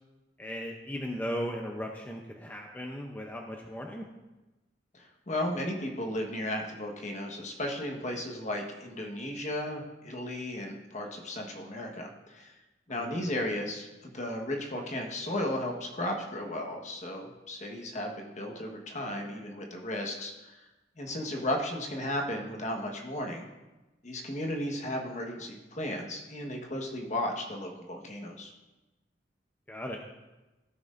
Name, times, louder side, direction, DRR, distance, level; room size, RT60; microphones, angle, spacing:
voice 1, 0.4-4.1 12.9-13.2 29.7-30.0, equal, 10° left, 1 dB, 0.6 m, -37 dB
voice 2, 4.9-12.5 12.9-13.9 14.1-20.5 21.0-23.5 24.0-28.5, left 1 dB, 45° left, 1 dB, 1.3 m, -35 dB
15.0 x 6.1 x 2.5 m, 1.1 s
head